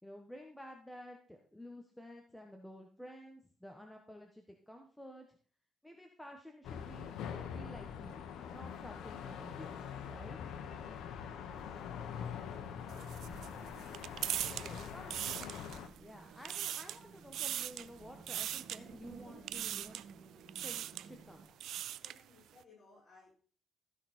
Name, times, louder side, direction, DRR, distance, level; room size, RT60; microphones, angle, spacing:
voice 1, 0.0-5.3 5.8-8.2 8.5-10.5 14.6-15.1 16.0-20.0 20.6-21.5, equal, 5° left, 2 dB, 1.5 m, -52 dB
sound 1, 6.6-15.9, left 8 dB, 80° left, 1.2 m, -44 dB
sound 2, 11.5-21.5, right 5 dB, 55° right, 2.8 m, -56 dB
voice 2, 12.5-13.5 14.1-15.0 22.0-23.4, left 3 dB, 35° left, -3 dB, 6.3 m, -61 dB
sound 3, 12.9-16.0 16.3-17.0 17.3-17.9 18.3-18.8 19.5-20.1 20.5-21.1 21.5-22.2, right 11 dB, 75° right, 0.4 m, -40 dB
14.0 x 6.1 x 4.4 m, 0.42 s
cardioid pair, 90°, 0 cm